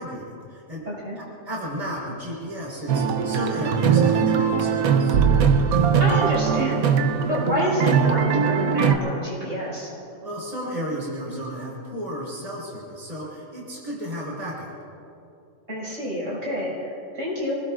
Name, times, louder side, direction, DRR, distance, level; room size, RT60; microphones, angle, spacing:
voice 1, 0.0-0.9 1.2-5.2 10.2-14.7, equal, 25° right, -5 dB, 4.2 m, -33 dB
voice 2, 0.9-1.2 6.0-6.8 7.2-9.9 15.7-17.6, equal, 60° right, -6 dB, 5.8 m, -28 dB
sound 1, 2.9-8.9, right 6 dB, 80° right, 1.3 m, -20 dB
28.5 x 20.0 x 2.5 m, 2.7 s
omnidirectional pair, 1.5 m